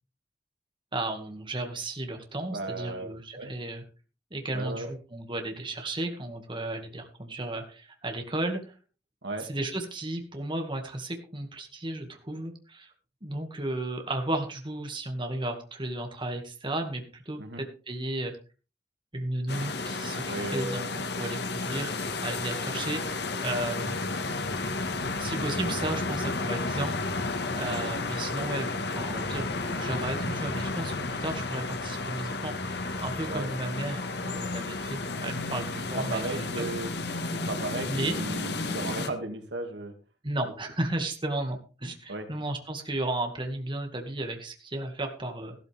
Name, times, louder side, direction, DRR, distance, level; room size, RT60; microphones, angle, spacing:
voice 1, 0.9-3.8 4.3-8.8 9.4-12.9 13.2-18.3 19.1-24.0 25.2-27.0 27.6-36.7 37.9-38.2 40.2-45.5, right 1 dB, 30° right, 4 dB, 2.1 m, -34 dB
voice 2, 2.5-3.1 3.4-3.5 4.5-4.9 9.2-9.5 17.4-17.6 20.3-20.9 33.2-33.5 35.6-35.7 35.9-36.9 37.3-39.9 42.1-42.3, right 2 dB, 75° right, 6 dB, 2.5 m, -35 dB
sound 1, 19.5-39.1, left 3 dB, 70° left, 1.7 m, -32 dB
15.0 x 13.5 x 3.6 m, 0.35 s
head